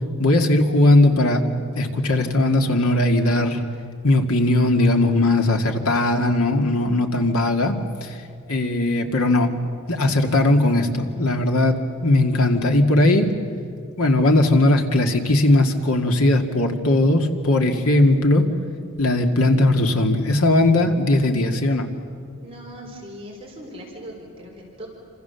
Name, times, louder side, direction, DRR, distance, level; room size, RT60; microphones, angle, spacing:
voice 1, 0.2-3.6 4.0-8.2 8.5-9.6 9.9-13.3 14.0-18.5 19.0-21.9, left 1 dB, 80° left, 4 dB, 2.2 m, -19 dB
voice 2, 22.4-24.9, equal, 25° right, -2 dB, 4.2 m, -39 dB
28.0 x 26.5 x 7.0 m, 2.4 s
head